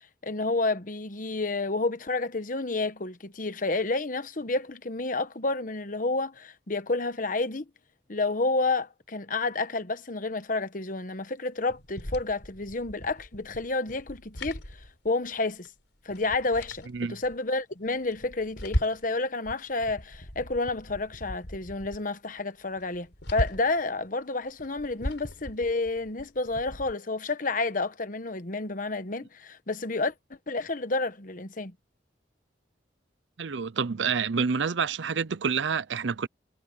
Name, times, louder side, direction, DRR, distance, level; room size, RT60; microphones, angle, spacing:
voice 1, 0.2-7.6 8.1-14.6 15.0-15.7 16.0-30.1 30.5-31.7, left 3 dB, 45° left, 1.2 m, -30 dB
sound 1, 11.7-15.4 15.6-15.7 16.1-17.4 17.9-19.2 19.4-22.0 22.4-22.5 22.8-23.8 24.5-26.9, equal, 80° left, 5.5 m, -37 dB
voice 2, 33.4-36.3, right 5 dB, 80° right, 0.6 m, -28 dB
head